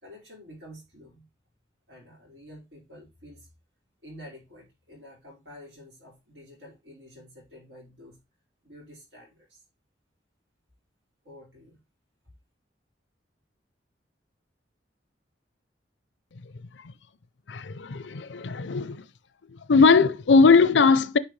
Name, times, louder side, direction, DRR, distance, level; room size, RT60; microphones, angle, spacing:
voice 1, 0.0-1.3 1.9-3.5 4.0-8.2 8.6-9.6 11.2-11.8, equal, 90° right, 5.1 m, -49 dB
voice 2, 17.5-19.0 19.7-21.2, left 4 dB, 90° left, 0.6 m, -19 dB
10.0 x 5.8 x 3.2 m
head